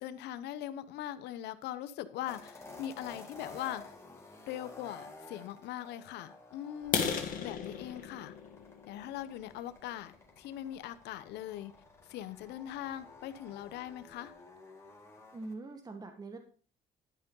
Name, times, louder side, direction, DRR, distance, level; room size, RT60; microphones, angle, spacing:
voice 1, 0.0-3.9 4.5-8.3 8.9-11.7 12.1-14.3, left 12 dB, 80° left, 0.9 m, -41 dB
sound 1, 2.3-15.5, left 2 dB, 15° left, 2.4 m, -53 dB
sound 2, 6.8-10.6 11.1-11.3 11.8-11.9 12.3-12.4 12.8-12.9 13.3-13.4 13.6-14.1, left 7 dB, 55° left, 2.1 m, -36 dB
voice 2, 15.3-16.4, right 3 dB, 25° right, 1.4 m, -43 dB
11.5 x 5.5 x 5.3 m
cardioid pair, 110°, 17 cm